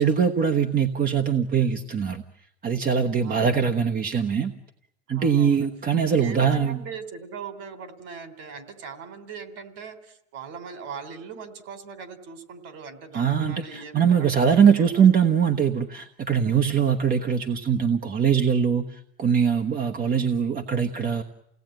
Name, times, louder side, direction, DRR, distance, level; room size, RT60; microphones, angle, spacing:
voice 1, 0.0-2.2 2.6-4.5 5.1-6.8 13.1-21.2, right 7 dB, 25° right, 6 dB, 1.2 m, -22 dB
voice 2, 3.2-3.6 5.1-5.7 5.9-15.0, right 5 dB, 45° right, 9 dB, 3.4 m, -40 dB
28.5 x 18.0 x 9.1 m, 0.81 s
supercardioid pair, 140°, 34 cm